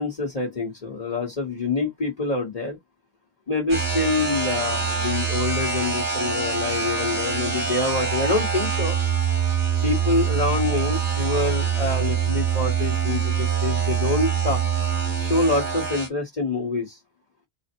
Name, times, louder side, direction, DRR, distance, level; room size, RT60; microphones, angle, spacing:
voice 1, 0.0-2.8 3.5-8.9 9.8-14.6 15.2-17.0, left 3 dB, 35° left, 1.1 m, -26 dB
sound 1, 3.7-16.1, right 6 dB, 80° right, 2.2 m, -24 dB
4.0 x 2.0 x 4.3 m
omnidirectional pair, 1.1 m